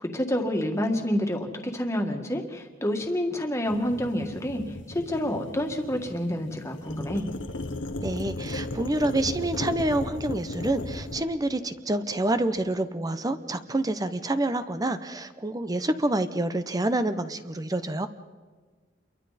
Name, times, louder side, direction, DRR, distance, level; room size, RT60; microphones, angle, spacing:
voice 1, 0.0-7.3, equal, 15° left, 3 dB, 1.9 m, -28 dB
sound 1, 3.7-11.2, left 2 dB, 75° left, 1.2 m, -36 dB
voice 2, 8.0-18.1, right 1 dB, 20° right, 11 dB, 0.7 m, -27 dB
28.5 x 23.0 x 4.2 m, 1.4 s
head